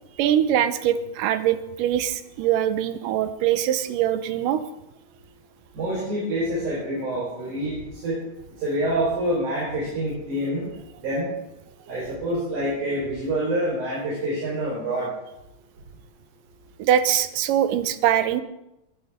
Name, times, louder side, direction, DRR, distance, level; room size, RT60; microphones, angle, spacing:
voice 1, 0.2-4.6 16.8-18.4, right 10 dB, 85° right, 11 dB, 2.5 m, -22 dB
voice 2, 5.7-8.2 8.6-10.7 11.0-11.3 11.9-15.1, right 1 dB, 65° right, -6 dB, 5.7 m, -26 dB
19.5 x 12.0 x 3.6 m, 0.89 s
omnidirectional pair, 3.7 m